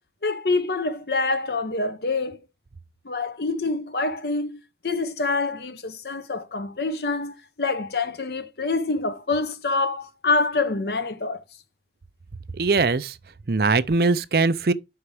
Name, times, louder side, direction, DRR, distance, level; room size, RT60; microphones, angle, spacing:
voice 1, 0.2-2.4 3.0-11.4, left 3 dB, 65° left, 0.9 m, -26 dB
voice 2, 12.6-13.2 13.5-14.7, right 3 dB, 55° right, 0.6 m, -21 dB
6.8 x 5.6 x 4.8 m
head